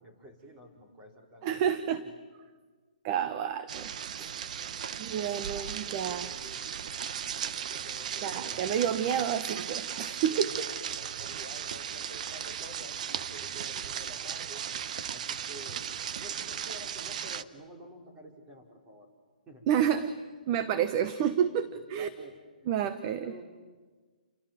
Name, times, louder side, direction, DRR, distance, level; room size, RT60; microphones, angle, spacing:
voice 1, 0.0-1.7 5.5-6.7 7.7-8.8 9.9-14.6 15.1-15.8 16.2-19.1 19.5-19.9 21.4-22.7 23.0-23.5, equal, 15° right, 1 dB, 4.9 m, -50 dB
voice 2, 1.4-2.0 3.0-3.9 4.2-4.3 5.0-6.3 8.2-10.7 19.7-20.1 20.5-22.1 22.7-23.3, right 9 dB, 30° right, 11 dB, 1.0 m, -29 dB
sound 1, 3.7-17.4, right 8 dB, 55° right, 1.0 m, -36 dB
30.0 x 25.5 x 7.6 m, 1.4 s
hypercardioid pair, 155°, 5 cm